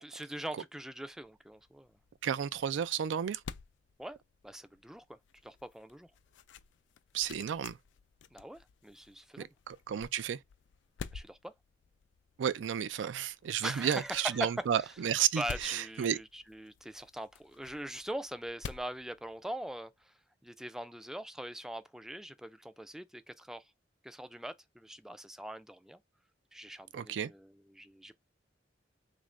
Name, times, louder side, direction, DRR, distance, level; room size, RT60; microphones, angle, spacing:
voice 1, 0.0-1.9 4.0-4.2 4.4-6.1 8.3-9.5 11.1-11.5 13.6-14.9 15.4-20.1 20.4-23.7 24.0-26.0 26.5-28.1, right 1 dB, 5° right, 0.3 m, -42 dB
sound 1, 1.2-19.9, left 6 dB, 75° left, 0.4 m, -51 dB
voice 2, 2.2-3.4 7.1-7.8 9.7-10.4 12.4-16.2 26.9-27.3, right 9 dB, 90° right, 0.4 m, -32 dB
3.4 x 2.6 x 3.1 m
head